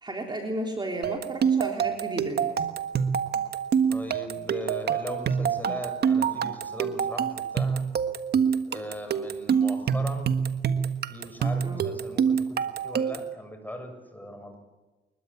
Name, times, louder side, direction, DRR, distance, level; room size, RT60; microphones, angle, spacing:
voice 1, 0.0-2.5 11.6-11.8, right 1 dB, 20° right, 2 dB, 3.6 m, -33 dB
sound 1, 1.0-13.3, right 7 dB, 55° right, 1.5 m, -26 dB
voice 2, 3.9-7.8 8.7-10.3 11.1-14.6, left 1 dB, 10° left, 6 dB, 7.1 m, -39 dB
25.0 x 22.0 x 8.7 m, 1.2 s
cardioid pair, 90°, 20 cm